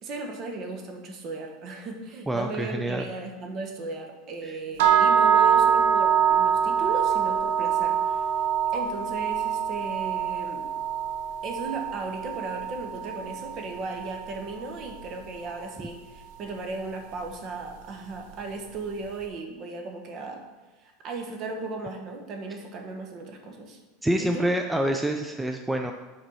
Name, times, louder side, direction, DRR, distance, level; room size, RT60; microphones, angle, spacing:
voice 1, 0.0-8.3 8.7-10.6 11.4-20.4 20.8-23.8 24.2-24.5, right 3 dB, 40° right, 4 dB, 1.3 m, -36 dB
voice 2, 2.3-3.1 4.4-4.5 24.0-25.9, right 1 dB, 5° right, 4 dB, 0.4 m, -27 dB
sound 1, 4.8-14.9, right 8 dB, 75° right, 1.1 m, -24 dB
8.0 x 4.3 x 5.5 m, 1.2 s
supercardioid pair, 140°, 0 cm